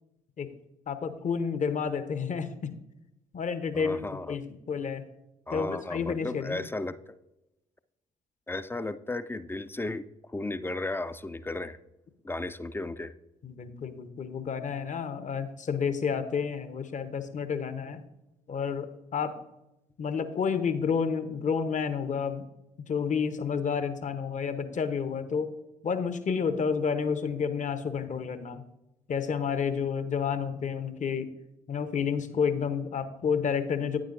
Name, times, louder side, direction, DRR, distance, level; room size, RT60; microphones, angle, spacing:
voice 1, 0.9-2.7 3.3-5.0 5.5-6.6 13.4-18.0 18.5-19.4 20.0-22.5 22.9-25.5 25.8-28.6 29.1-31.3 31.7-34.0, left 6 dB, 40° left, 12 dB, 0.8 m, -30 dB
voice 2, 3.7-4.4 5.5-7.2 8.5-10.1 10.3-11.8 12.2-13.1, left 2 dB, 10° left, 14 dB, 0.4 m, -34 dB
9.2 x 8.7 x 2.6 m, 0.92 s
figure-of-eight pair, 40°, 20 cm